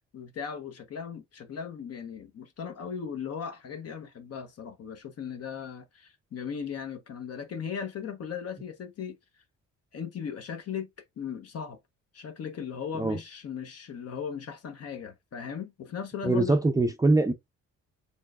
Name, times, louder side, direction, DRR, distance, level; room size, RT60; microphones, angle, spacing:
voice 1, 0.1-9.4 9.9-10.9 11.2-11.8 12.1-16.6, left 7 dB, 55° left, 0.8 m, -37 dB
voice 2, 16.2-17.3, right 2 dB, 10° right, 0.5 m, -23 dB
4.5 x 3.2 x 2.3 m
cardioid pair, 90°, 30 cm